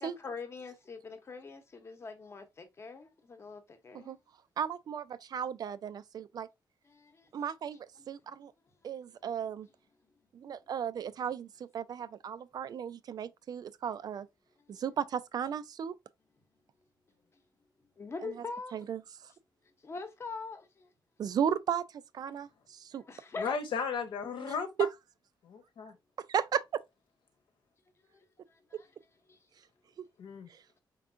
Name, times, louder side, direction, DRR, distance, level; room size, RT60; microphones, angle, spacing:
voice 1, 0.0-4.2 6.8-7.4 8.3-8.4 17.3-17.4 18.0-18.8 19.8-20.9 23.0-23.5 28.1-28.9 29.3-29.4, left 4 dB, 30° left, 0.9 m, -43 dB
voice 2, 4.6-6.5 7.3-8.5 8.8-9.7 10.3-14.3 14.7-15.9 18.2-18.4 18.7-19.3 21.2-23.0 26.2-26.8 30.0-30.1 30.5-30.6, right 8 dB, 50° right, 0.3 m, -35 dB
voice 3, 23.4-24.7 25.4-25.9 30.2-30.5, left 5 dB, 75° left, 1.0 m, -35 dB
4.5 x 3.6 x 2.5 m
wide cardioid pair, 165°, 8 cm